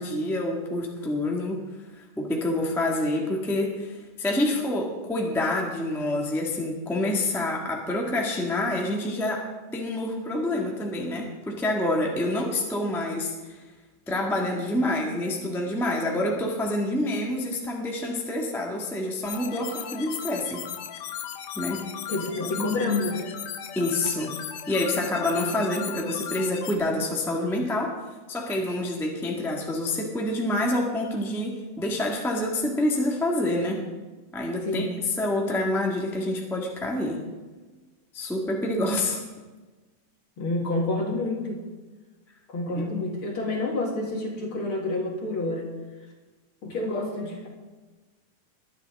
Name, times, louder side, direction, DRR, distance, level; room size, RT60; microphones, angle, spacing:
voice 1, 0.0-1.6 1.9-13.6 14.1-20.6 21.5-21.8 22.6-22.7 23.7-24.3 24.7-28.0 28.3-33.8 34.3-34.9 35.2-37.2 38.1-39.2 42.7-42.9, left 1 dB, ahead, -1 dB, 1.2 m, -27 dB
sound 1, 19.3-26.7, left 9 dB, 85° left, 2.6 m, -36 dB
voice 2, 22.1-23.3 34.6-34.9 40.4-41.7 42.5-45.7 46.6-47.5, left 2 dB, 45° left, 0 dB, 2.4 m, -28 dB
21.0 x 11.0 x 3.8 m, 1.3 s
omnidirectional pair, 3.6 m